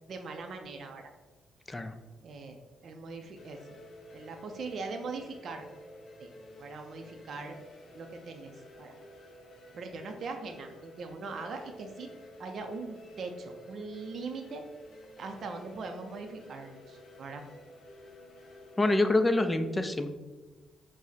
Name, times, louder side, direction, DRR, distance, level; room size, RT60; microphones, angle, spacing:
voice 1, 0.1-1.1 2.2-3.6 4.1-5.7 6.2-6.3 6.6-7.6 7.9-9.0 9.7-12.1 12.4-14.6 15.2-17.5, right 4 dB, 55° right, 4 dB, 0.4 m, -41 dB
sound 1, 3.4-19.1, left 1 dB, 50° left, 0.7 m, -51 dB
voice 2, 18.8-20.1, left 2 dB, 15° left, 9 dB, 0.4 m, -26 dB
4.8 x 2.0 x 4.1 m, 1.2 s
cardioid pair, 90°, 0 cm